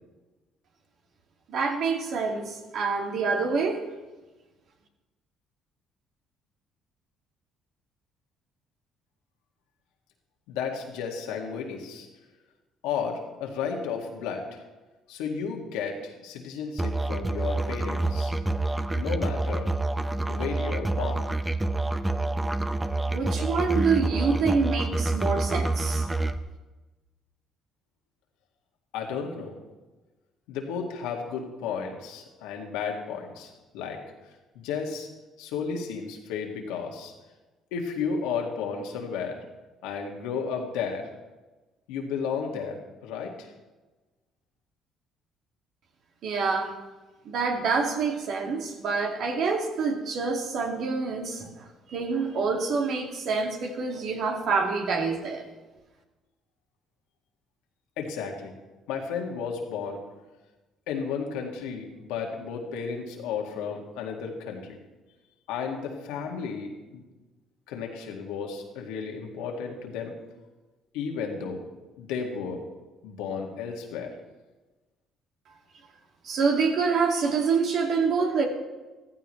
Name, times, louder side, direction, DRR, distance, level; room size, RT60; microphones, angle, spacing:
voice 1, 1.5-3.8 23.1-26.1 46.2-46.7 47.2-51.5 51.9-55.5 76.2-78.5, right 4 dB, 65° right, 2 dB, 2.3 m, -26 dB
voice 2, 10.5-12.1 12.8-14.6 15.1-18.3 18.9-19.7 20.3-21.3 28.9-29.6 30.5-34.0 34.6-35.1 35.4-37.1 37.7-39.4 39.8-41.1 41.9-43.5 58.0-58.5 58.9-60.0 60.9-64.8 65.5-67.0 67.7-70.1 70.9-71.6 72.0-72.6 73.0-74.1, left 6 dB, 90° left, 1 dB, 2.1 m, -33 dB
Musical instrument, 16.8-26.4, right 2 dB, 15° right, 0.8 m, -27 dB
15.0 x 14.5 x 3.2 m, 1.2 s
supercardioid pair, 80°, 0 cm